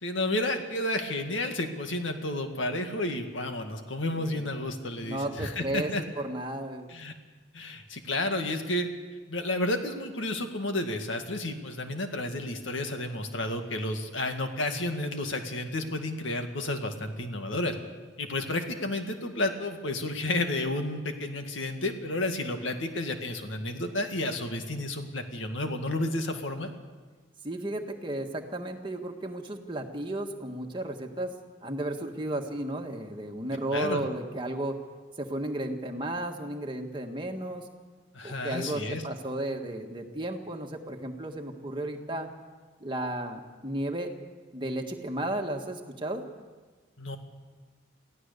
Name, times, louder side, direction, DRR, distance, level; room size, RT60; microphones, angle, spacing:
voice 1, 0.0-6.0 6.9-7.1 7.5-8.9 9.3-17.7 18.2-26.7 33.7-34.0 38.1-39.0 47.0-47.2, left 1 dB, 70° left, 5 dB, 2.0 m, -31 dB
voice 2, 4.1-4.5 5.0-6.9 27.4-31.3 31.6-34.8 35.2-37.6 38.2-42.3 42.8-44.1 44.5-46.2, right 1 dB, 25° right, 2 dB, 1.7 m, -34 dB
24.0 x 16.0 x 6.9 m, 1.4 s
head